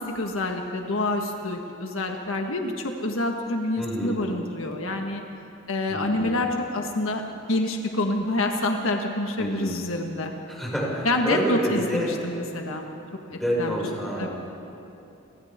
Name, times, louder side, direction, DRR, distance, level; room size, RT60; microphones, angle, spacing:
voice 1, 0.0-5.2 5.7-7.2 7.5-10.3 11.0-12.8 13.3-13.8 14.2-14.3, left 2 dB, 80° left, 3 dB, 1.6 m, -27 dB
voice 2, 3.8-4.2 5.9-6.3 9.4-9.7 10.5-12.1 13.3-14.3, equal, ahead, -6 dB, 6.2 m, -28 dB
30.0 x 24.5 x 3.7 m, 2.8 s
head